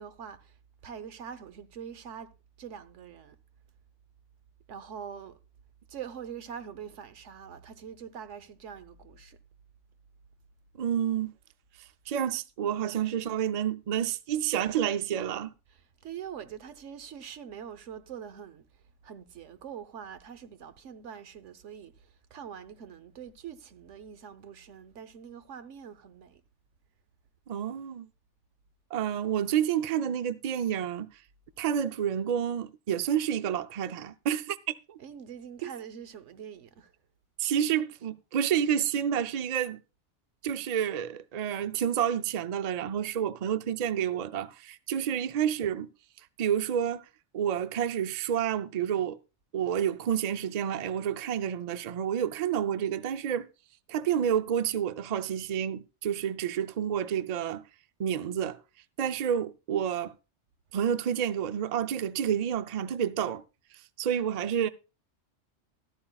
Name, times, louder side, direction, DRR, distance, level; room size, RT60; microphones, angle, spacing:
voice 1, 0.0-2.3 2.6-3.4 4.7-5.4 5.9-9.4 15.7-26.4 35.0-36.9, right 8 dB, 90° right, 1.2 m, -44 dB
voice 2, 10.8-11.3 12.1-15.5 27.5-28.1 28.9-31.1 31.6-35.0 35.6-35.7 37.4-39.8 40.4-45.9 46.4-47.0 47.3-49.2 49.5-53.5 53.9-57.6 58.0-58.6 59.0-60.1 60.7-63.4 64.0-64.7, right 9 dB, 45° right, 0.5 m, -29 dB
13.0 x 13.0 x 2.3 m
omnidirectional pair, 1.2 m